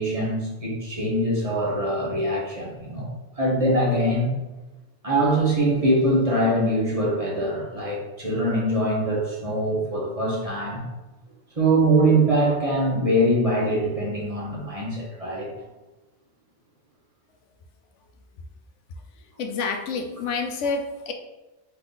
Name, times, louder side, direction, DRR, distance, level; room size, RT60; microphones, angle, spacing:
voice 1, 0.0-3.1 3.4-4.3 5.0-10.8 11.6-15.5, right 1 dB, 30° right, -5 dB, 1.2 m, -23 dB
voice 2, 19.4-21.1, left 4 dB, 85° left, 4 dB, 0.9 m, -28 dB
3.8 x 3.3 x 3.9 m, 1.1 s
omnidirectional pair, 1.2 m